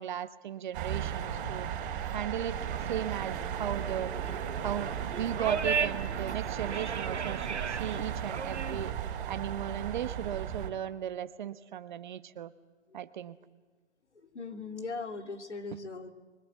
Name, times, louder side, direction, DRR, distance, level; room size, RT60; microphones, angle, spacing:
voice 1, 0.0-1.7 2.1-2.6 2.8-4.1 4.6-8.9 9.3-12.5 12.9-13.4, right 10 dB, 45° right, 13 dB, 1.2 m, -36 dB
sound 1, 0.7-10.7, right 9 dB, 30° right, 4.3 m, -36 dB
sound 2, 2.6-8.9, right 6 dB, 85° right, 1.2 m, -36 dB
voice 2, 14.1-16.1, left 3 dB, 85° left, 5 dB, 2.8 m, -39 dB
24.5 x 23.0 x 8.5 m, 1.3 s
figure-of-eight pair, 140°, 34 cm